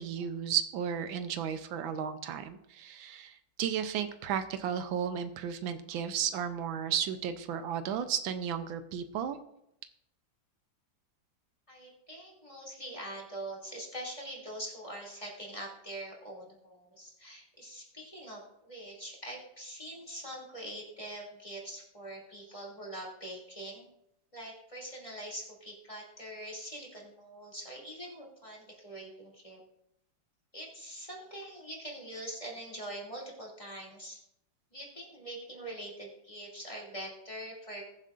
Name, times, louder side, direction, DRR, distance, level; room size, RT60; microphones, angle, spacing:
voice 1, 0.0-9.4, right 8 dB, 90° right, 10 dB, 1.5 m, -34 dB
voice 2, 11.7-23.9 24.3-29.6 30.5-34.2 34.7-37.8, right 1 dB, 15° left, -4 dB, 2.6 m, -43 dB
20.5 x 7.4 x 2.5 m, 0.79 s
omnidirectional pair, 2.1 m